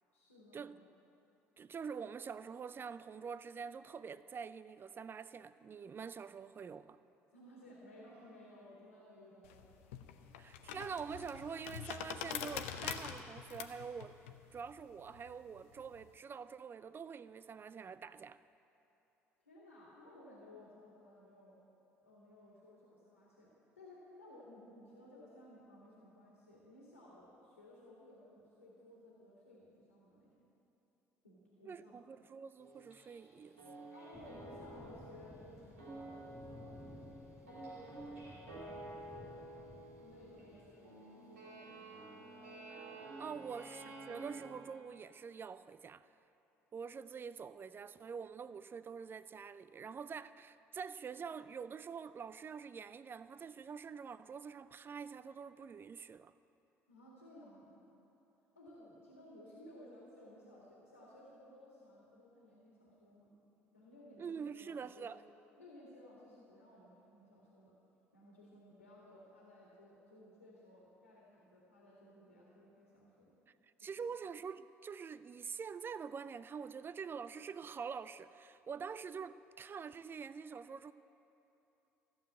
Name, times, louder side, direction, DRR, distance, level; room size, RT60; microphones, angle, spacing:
voice 1, 0.1-0.7 7.3-9.7 10.2-10.3 19.4-21.6 22.0-30.5 31.2-32.0 33.9-37.1 37.4-39.6 40.0-42.1 43.3-43.5 56.9-57.8 58.6-63.3 63.7-65.1 65.6-67.8 68.1-73.3 73.8-74.1, left 1 dB, 85° left, 1.9 m, -58 dB
voice 2, 1.6-7.0 10.4-14.2 14.5-18.4 31.6-33.9 43.1-46.1 46.7-56.3 64.2-65.2 73.6-80.9, right 6 dB, 30° right, 0.4 m, -46 dB
sound 1, 9.4-16.1, left 9 dB, 70° left, 0.7 m, -45 dB
sound 2, 32.6-33.3 33.6-44.5, right 2 dB, 90° right, 3.5 m, -51 dB
sound 3, 34.1-40.7, left 1 dB, ahead, 1.4 m, -57 dB
14.5 x 7.2 x 9.2 m
figure-of-eight pair, 55°, 7 cm